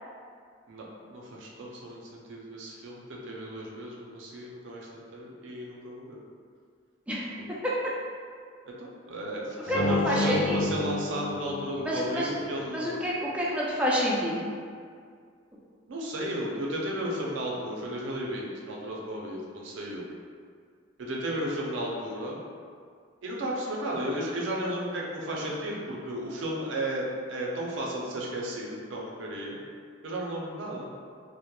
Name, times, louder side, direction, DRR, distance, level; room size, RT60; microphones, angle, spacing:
voice 1, 0.7-6.2 8.7-13.0 15.9-20.1 21.0-22.4 23.2-29.6 30.0-30.9, right 1 dB, 70° right, -3 dB, 0.5 m, -34 dB
sound 1, 9.6-12.4, left 2 dB, 85° left, 0.5 m, -30 dB
voice 2, 9.7-10.6 11.9-12.3 12.7-14.4, equal, 5° right, -6 dB, 0.3 m, -28 dB
2.9 x 2.1 x 2.2 m, 2.1 s
head